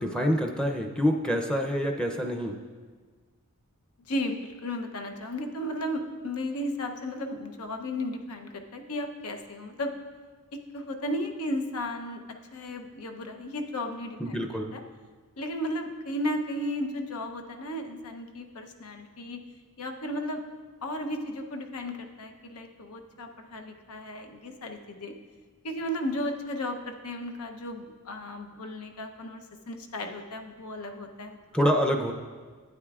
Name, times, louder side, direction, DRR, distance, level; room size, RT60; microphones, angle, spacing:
voice 1, 0.0-2.6 14.2-14.7 31.5-32.1, equal, 5° left, 2 dB, 0.5 m, -26 dB
voice 2, 4.1-9.9 10.5-12.2 12.5-14.5 14.7-14.8 15.4-19.4 19.8-20.4 20.8-25.1 25.6-31.7, left 1 dB, 90° left, 4 dB, 0.8 m, -34 dB
11.5 x 9.0 x 2.4 m, 1.5 s
head